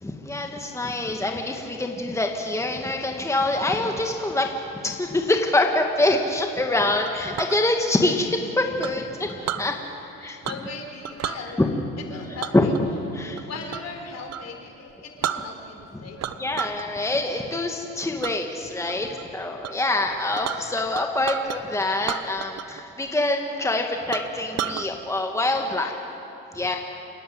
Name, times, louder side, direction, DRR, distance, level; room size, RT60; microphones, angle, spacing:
voice 1, 0.0-4.5 4.8-9.7 10.2-10.4 11.6-11.7 12.5-12.7 13.1-13.5 16.4-19.1 19.3-25.9 26.5-26.8, left 2 dB, 10° left, 3 dB, 1.9 m, -25 dB
Chink clink, 7.1-7.6 8.8-9.7 10.4-10.8 11.0-11.4 12.4-13.9 14.3-14.5 14.9-15.0 15.2-15.9 16.2-16.8 17.2-17.6 18.2-18.4 18.9-19.2 19.6-19.7 20.0-21.6 22.0-22.8 23.1-23.2 23.7-23.8 24.1-24.9, right 10 dB, 50° right, 1.0 m, -32 dB
voice 2, 9.8-11.6 12.1-12.7 13.4-16.6 16.8-16.9 18.9-19.4 23.5-23.8 25.5-26.0 26.6-26.8, left 4 dB, 55° left, 4 dB, 4.0 m, -40 dB
29.5 x 10.0 x 8.9 m, 3.0 s
supercardioid pair, 70°, 32 cm